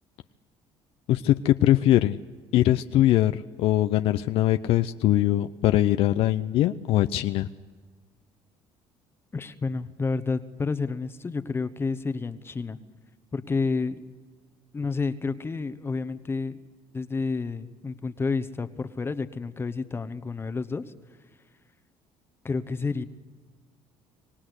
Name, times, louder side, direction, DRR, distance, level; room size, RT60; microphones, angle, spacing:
voice 1, 1.1-2.2 2.5-7.5, left 13 dB, 70° left, 10 dB, 0.6 m, -22 dB
voice 2, 9.3-12.8 13.3-14.0 14.7-16.6 16.9-20.9 22.4-23.0, left 4 dB, 25° left, 11 dB, 1.1 m, -30 dB
25.5 x 18.0 x 8.2 m, 1.4 s
cardioid pair, 105°, 10 cm